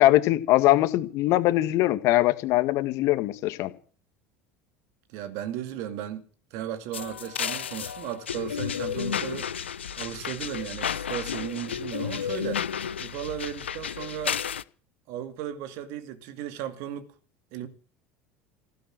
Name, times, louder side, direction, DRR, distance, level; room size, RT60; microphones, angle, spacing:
voice 1, 0.0-3.7, left 16 dB, 55° left, 1.7 m, -22 dB
voice 2, 5.1-6.2 6.5-9.5 10.0-12.6 13.0-14.4 15.1-17.1 17.5-17.7, right 11 dB, 60° right, 2.4 m, -35 dB
sound 1, 6.9-14.6, left 8 dB, 85° left, 0.6 m, -32 dB
16.0 x 11.0 x 7.7 m
figure-of-eight pair, 70°, 6 cm